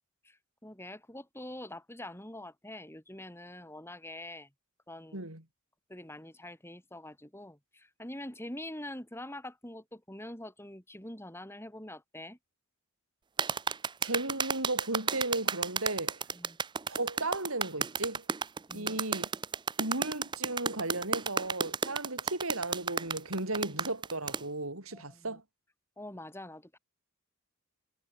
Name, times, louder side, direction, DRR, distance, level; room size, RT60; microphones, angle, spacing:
voice 1, 0.2-4.5 4.9-5.2 5.9-12.4 16.3-16.6 18.7-19.0 24.9-25.4 26.0-26.8, left 1 dB, 10° left, 7.5 m, -45 dB
voice 2, 5.1-5.4 14.0-16.2 16.9-18.2 18.7-19.3 19.8-25.4, right 2 dB, 80° right, 7.2 m, -35 dB
sound 1, 13.4-24.4, right 6 dB, 20° right, 0.5 m, -32 dB
head